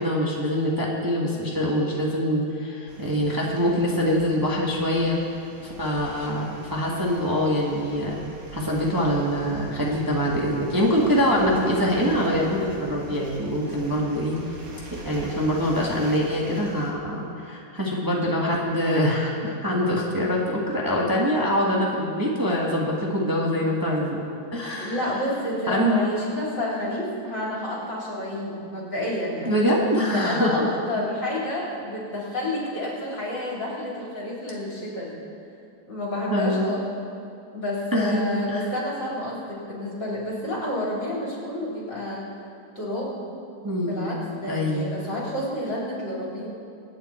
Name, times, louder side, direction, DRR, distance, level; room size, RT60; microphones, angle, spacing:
voice 1, 0.0-5.2 5.6-8.2 8.5-14.4 15.0-24.2 24.5-25.0 25.7-26.0 29.4-30.7 36.3-36.7 37.9-38.2 38.5-38.7 43.6-44.2 44.5-44.9, equal, 10° right, -4 dB, 1.5 m, -24 dB
sound 1, 2.9-16.9, right 2 dB, 60° right, 2.4 m, -43 dB
voice 2, 24.8-29.5 30.0-35.2 35.9-36.8 37.5-42.3 42.8-43.2 43.8-46.5, left 1 dB, 65° left, -5 dB, 4.4 m, -29 dB
24.0 x 9.0 x 4.4 m, 2.5 s
omnidirectional pair, 2.1 m